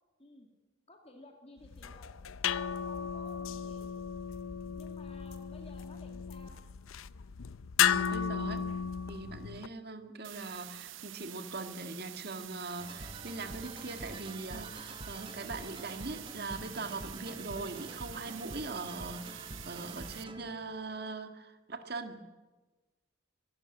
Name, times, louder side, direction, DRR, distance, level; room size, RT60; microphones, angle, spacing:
voice 1, 0.2-0.5 0.9-2.1 2.6-3.9 4.8-6.6, left 1 dB, 30° left, 3 dB, 2.3 m, -55 dB
sound 1, 1.6-9.7, left 8 dB, 85° left, 0.6 m, -34 dB
voice 2, 7.8-8.7 9.1-22.2, right 3 dB, 50° right, 7 dB, 1.8 m, -41 dB
sound 2, 10.2-20.2, right 13 dB, 70° right, 0.8 m, -48 dB
sound 3, 12.8-20.7, right 1 dB, 25° right, 1.4 m, -46 dB
23.5 x 12.5 x 9.9 m, 1.2 s
head